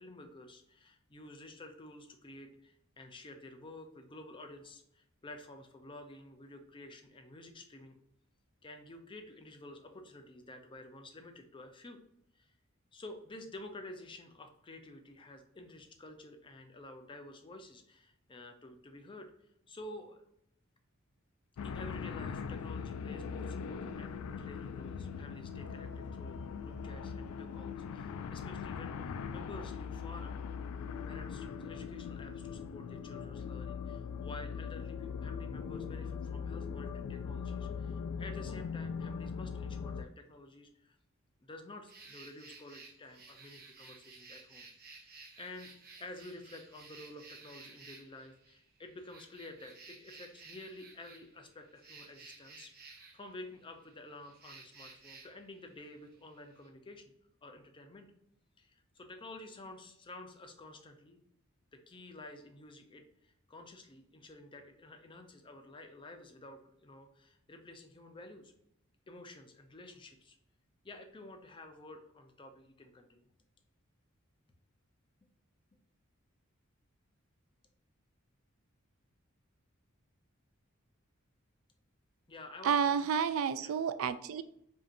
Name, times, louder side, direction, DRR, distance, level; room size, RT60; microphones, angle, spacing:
voice 1, 0.0-8.0 8.6-12.0 12.3-12.5 12.9-19.3 19.7-20.2 21.6-30.5 31.1-41.0 41.4-44.7 44.9-45.7 46.0-57.0 57.4-58.1 58.6-61.2 61.7-68.5 69.1-70.4 70.8-73.2 82.3-83.0 83.6-83.7, left 2 dB, 25° left, 5 dB, 0.5 m, -51 dB
sound 1, 21.6-40.1, left 6 dB, 80° left, 0.3 m, -40 dB
sound 2, 41.9-56.7, right 4 dB, 45° right, 0.8 m, -55 dB
voice 2, 82.6-84.4, right 7 dB, 70° right, 13 dB, 0.3 m, -30 dB
5.2 x 2.8 x 2.5 m, 0.74 s
head